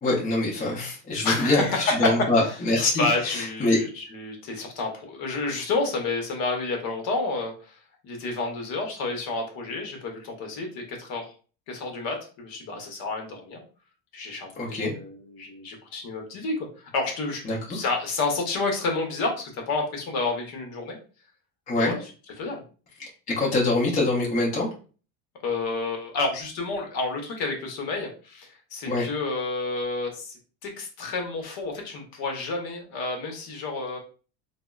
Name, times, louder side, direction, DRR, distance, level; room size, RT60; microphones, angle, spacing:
voice 1, 0.0-3.8 14.6-14.9 17.4-17.8 21.7-21.9 23.0-24.7 28.9-29.1, left 2 dB, 15° left, -4 dB, 0.5 m, -24 dB
voice 2, 1.2-2.6 3.0-7.8 8.0-11.3 11.7-13.6 14.1-16.7 16.9-17.4 17.7-21.0 21.7-22.1 22.4-22.6 25.4-34.0, left 3 dB, 45° left, 2 dB, 0.9 m, -30 dB
3.5 x 2.1 x 2.2 m, 0.37 s
cardioid pair, 140°, 50 cm